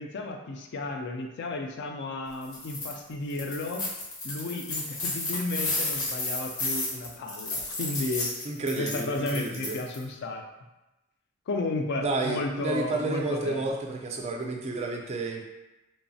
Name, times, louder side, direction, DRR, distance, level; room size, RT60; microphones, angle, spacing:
voice 1, 0.0-3.8 4.2-8.5 8.8-10.4 11.5-13.7, left 2 dB, 55° left, 3 dB, 0.3 m, -33 dB
sound 1, 2.4-2.9 3.3-10.0, left 2 dB, 70° left, 0.8 m, -32 dB
voice 2, 8.4-9.8 12.0-15.4, right 3 dB, 30° right, 1 dB, 0.3 m, -31 dB
3.0 x 2.0 x 2.6 m, 1.0 s
head